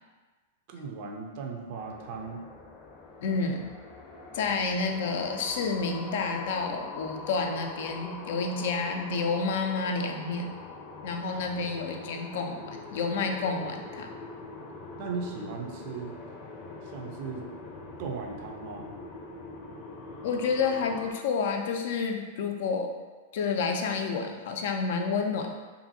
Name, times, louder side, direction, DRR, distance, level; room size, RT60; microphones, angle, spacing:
voice 1, 0.7-2.4 15.0-16.2 16.8-17.5 18.0-18.9, right 4 dB, 50° right, 2 dB, 0.4 m, -37 dB
sound 1, 1.8-21.1, left 3 dB, 30° left, 0.6 m, -43 dB
voice 2, 3.2-3.7 4.3-10.5 11.0-14.1 20.2-22.9 23.3-25.6, left 4 dB, 60° left, 3 dB, 0.4 m, -29 dB
2.6 x 2.6 x 2.6 m, 1.3 s
hypercardioid pair, 105°, 0 cm